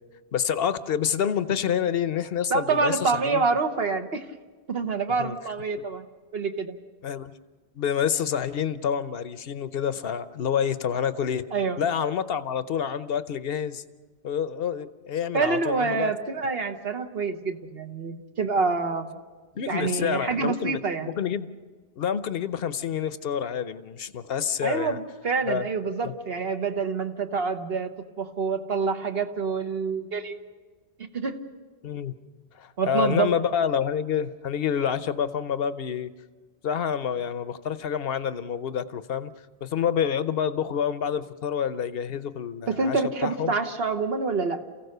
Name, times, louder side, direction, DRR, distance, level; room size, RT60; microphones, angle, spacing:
voice 1, 0.3-3.5 5.2-5.4 7.0-7.3 7.7-11.4 11.8-13.8 14.2-16.1 19.5-20.8 21.1-21.5 22.0-25.0 25.5-25.7 26.0-26.1 31.8-32.1 32.5-36.1 36.6-39.3 39.6-43.5, left 8 dB, 65° left, 13 dB, 1.0 m, -28 dB
voice 2, 2.5-4.2 4.7-6.0 6.3-6.7 11.5-11.8 15.3-19.2 19.7-21.1 24.6-27.9 28.2-30.4 31.1-31.4 32.8-33.3 42.7-44.6, right 4 dB, 65° right, 6 dB, 1.5 m, -27 dB
28.5 x 16.0 x 6.7 m, 1.4 s
omnidirectional pair, 1.1 m